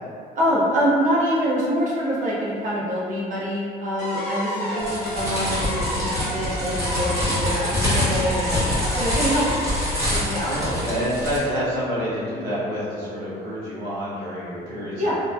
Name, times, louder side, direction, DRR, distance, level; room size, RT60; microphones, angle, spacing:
voice 1, 0.4-9.7 10.1-10.5 15.0-15.2, equal, 50° right, -6 dB, 0.6 m, -25 dB
sound 1, 4.0-10.9, equal, 70° left, 0.7 m, -31 dB
sound 2, 4.8-11.4, left 1 dB, 15° right, 1.2 m, -25 dB
voice 2, 10.4-15.1, equal, 75° right, -9 dB, 1.3 m, -28 dB
2.8 x 2.3 x 2.3 m, 2.3 s
cardioid pair, 110°, 17 cm